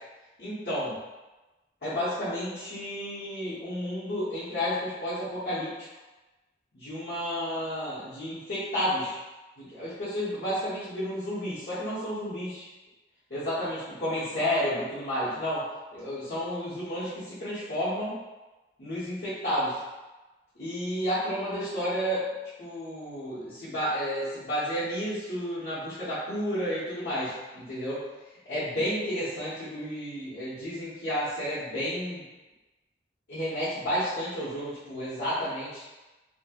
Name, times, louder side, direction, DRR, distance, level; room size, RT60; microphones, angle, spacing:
voice 1, 0.4-1.0 1.8-5.7 6.7-9.1 9.6-12.7 13.3-15.6 15.9-18.2 18.8-19.8 20.6-22.2 22.6-28.0 28.4-32.2 33.3-35.8, equal, 70° left, -15 dB, 1.1 m, -31 dB
3.0 x 2.4 x 2.9 m, 1.1 s
head